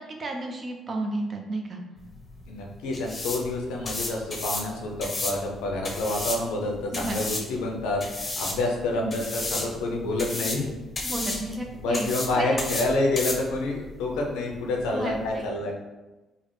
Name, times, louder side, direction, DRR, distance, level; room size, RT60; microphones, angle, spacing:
voice 1, 0.0-1.8 6.9-7.2 8.9-9.1 11.0-12.6 14.9-15.4, right 2 dB, 40° right, 2 dB, 0.5 m, -32 dB
sound 1, 2.0-15.5, left 2 dB, 35° left, 0.6 m, -34 dB
voice 2, 2.5-10.7 11.8-15.7, left 2 dB, 75° left, 0 dB, 0.5 m, -28 dB
3.1 x 2.1 x 3.1 m, 1.1 s
hypercardioid pair, 50°, 0 cm